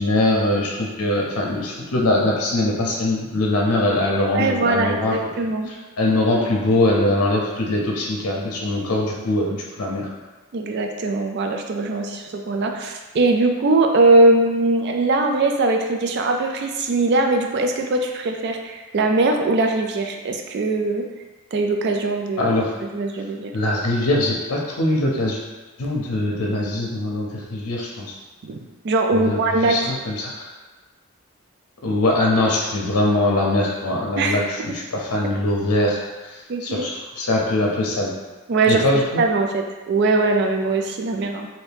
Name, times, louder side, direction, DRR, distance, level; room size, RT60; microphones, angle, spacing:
voice 1, 0.0-5.2 5.7-10.1 22.4-22.7 23.5-25.4 25.8-28.1 29.1-30.5 31.8-38.1 38.7-39.2, left 1 dB, 80° left, -2 dB, 0.6 m, -22 dB
voice 2, 4.3-5.7 10.5-21.1 21.5-22.5 22.9-23.5 28.4-28.6 28.8-29.8 34.2-34.4 36.5-36.9 38.5-38.8 39.2-41.5, right 2 dB, 50° right, 4 dB, 0.3 m, -21 dB
2.7 x 2.6 x 3.4 m, 1.2 s
head